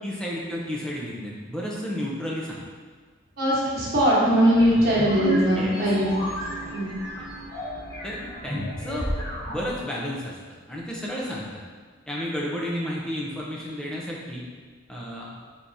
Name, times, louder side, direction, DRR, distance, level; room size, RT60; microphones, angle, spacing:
voice 1, 0.0-2.6 5.6-5.8 6.3-6.4 7.2-7.3 8.0-8.2 8.4-10.4 10.7-11.6 12.1-14.4 14.9-15.4, equal, 5° left, -4 dB, 0.5 m, -32 dB
voice 2, 3.4-6.1 6.7-6.9, equal, 45° right, -8 dB, 1.2 m, -20 dB
sound 1, 4.5-9.7, equal, 20° left, 1.5 m, -31 dB
4.5 x 3.5 x 2.6 m, 1.6 s
head